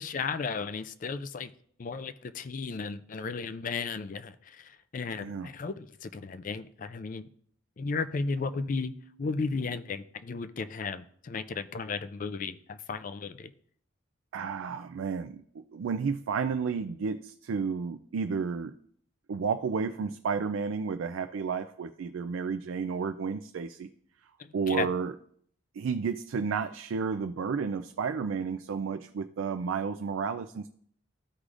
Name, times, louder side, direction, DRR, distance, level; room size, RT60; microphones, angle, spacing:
voice 1, 0.0-1.5 1.8-7.3 7.8-8.9 9.2-13.5 24.4-24.9, left 4 dB, 40° left, 13 dB, 0.4 m, -34 dB
Keyboard (musical), 8.4-10.2, equal, 40° right, 0.7 m, -58 dB
voice 2, 14.3-18.7 19.3-23.9 24.5-25.1 25.8-30.7, right 5 dB, 85° right, 9 dB, 0.4 m, -32 dB
13.5 x 4.9 x 2.5 m, 0.62 s
head